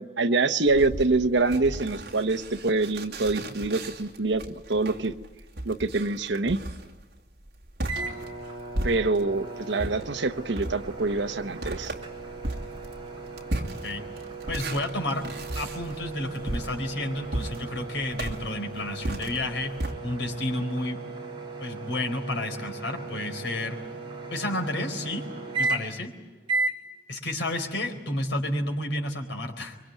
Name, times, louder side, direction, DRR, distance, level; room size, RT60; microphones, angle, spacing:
voice 1, 0.0-5.2 5.6-6.6 8.8-11.9, right 3 dB, 75° right, 8 dB, 1.1 m, -25 dB
sound 1, 0.7-9.4 9.8-19.9, right 1 dB, 60° right, 2.5 m, -36 dB
sound 2, 7.8-26.1 26.5-26.8, right 3 dB, 30° right, 4.2 m, -36 dB
voice 2, 14.5-15.3 15.5-19.7 20.0-21.0 21.6-23.8 24.3-25.3 25.5-26.1 27.1-29.8, left 1 dB, 80° left, 4 dB, 4.3 m, -31 dB
24.0 x 24.0 x 9.3 m, 1.2 s
head